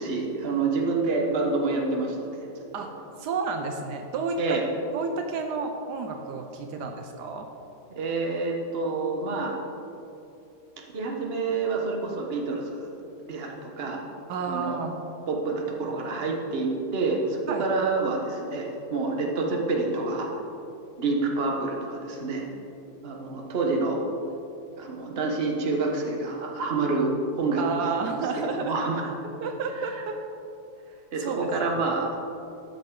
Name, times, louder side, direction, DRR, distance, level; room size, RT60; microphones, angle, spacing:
voice 1, 0.0-2.4 2.8-2.9 4.4-4.6 7.9-9.5 10.9-12.9 13.3-14.0 14.5-14.8 15.3-20.3 21.0-22.5 23.0-24.0 24.8-28.3 28.5-29.1 31.1-32.1, right 3 dB, 40° right, 0 dB, 1.3 m, -28 dB
voice 2, 3.2-4.6 4.9-7.5 14.3-15.0 17.5-17.7 27.6-28.8 29.4-30.2 30.9-31.5, right 4 dB, 75° right, 5 dB, 1.3 m, -31 dB
12.5 x 7.7 x 3.8 m, 2.8 s
omnidirectional pair, 1.8 m